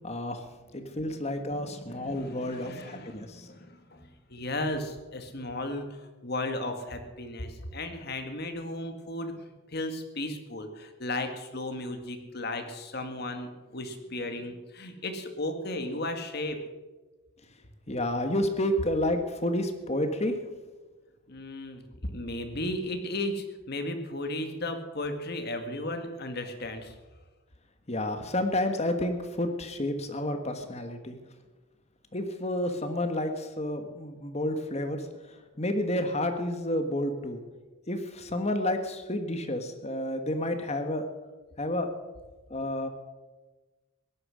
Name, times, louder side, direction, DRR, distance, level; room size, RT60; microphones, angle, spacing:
voice 1, 0.0-0.5 0.7-3.5 17.9-20.3 27.9-31.2 32.1-35.0 35.6-37.4 37.9-41.0 41.6-41.9 42.5-42.9, left 1 dB, 30° left, 7 dB, 1.5 m, -30 dB
voice 2, 0.8-1.2 1.5-16.6 21.3-27.0, left 1 dB, 50° left, 6 dB, 1.9 m, -35 dB
17.0 x 12.0 x 6.4 m, 1.2 s
head